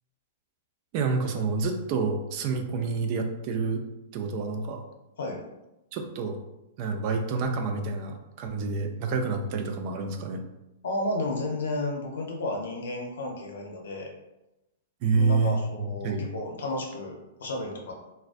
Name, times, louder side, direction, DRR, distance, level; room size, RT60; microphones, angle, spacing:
voice 1, 0.9-3.8 4.1-4.8 5.9-6.4 6.8-10.4 15.0-15.6 16.0-16.3, right 4 dB, 45° right, 5 dB, 0.3 m, -28 dB
voice 2, 10.8-14.1 15.1-17.9, left 2 dB, 80° left, 1 dB, 0.6 m, -32 dB
2.4 x 2.2 x 2.4 m, 0.95 s
hypercardioid pair, 125°, 0 cm